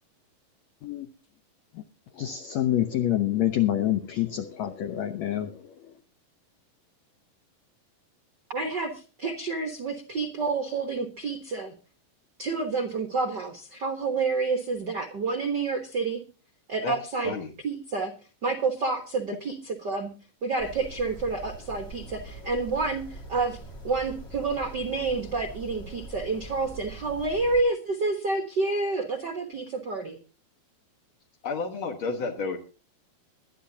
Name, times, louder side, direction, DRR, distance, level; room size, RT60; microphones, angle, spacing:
voice 1, 2.1-5.9, left 12 dB, 90° left, 8 dB, 1.5 m, -27 dB
voice 2, 8.5-11.7 12.4-16.2 16.7-17.3 17.6-18.1 18.4-20.1 20.4-23.6 23.8-30.2, right 3 dB, 80° right, 5 dB, 0.9 m, -29 dB
sound 1, 20.6-27.6, right 2 dB, 25° left, 1.6 m, -43 dB
voice 3, 31.4-32.6, left 4 dB, 60° left, 2 dB, 1.3 m, -31 dB
21.5 x 11.5 x 2.8 m, 0.34 s
omnidirectional pair, 4.3 m